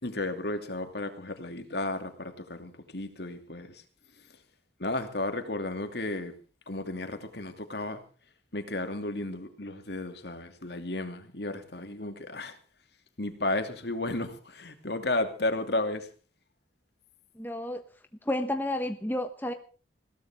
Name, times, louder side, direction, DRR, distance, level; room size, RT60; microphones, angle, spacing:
voice 1, 0.0-3.8 4.8-6.3 6.7-8.0 8.5-12.6 13.2-16.1, left 2 dB, 60° left, 7 dB, 2.6 m, -33 dB
voice 2, 17.4-17.8 18.2-19.5, left 1 dB, 10° left, 7 dB, 1.2 m, -31 dB
21.0 x 17.0 x 3.7 m, 0.36 s
head